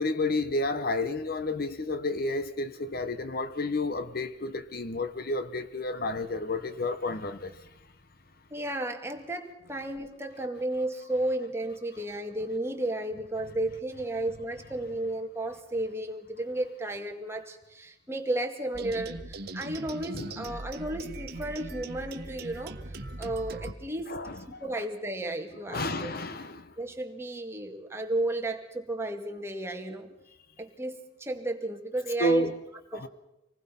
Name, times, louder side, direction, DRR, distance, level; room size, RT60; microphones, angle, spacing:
voice 1, 0.0-7.6 20.1-20.3 24.1-24.6 25.7-26.7 32.2-32.6 32.9-33.1, left 2 dB, 55° left, 1.1 m, -31 dB
voice 2, 8.5-24.2 24.5-26.1 26.8-30.1 30.6-32.5 32.9-33.1, right 1 dB, 15° right, 2.1 m, -33 dB
sound 1, 18.7-23.7, right 2 dB, 60° right, 1.4 m, -40 dB
26.0 x 19.5 x 5.7 m
head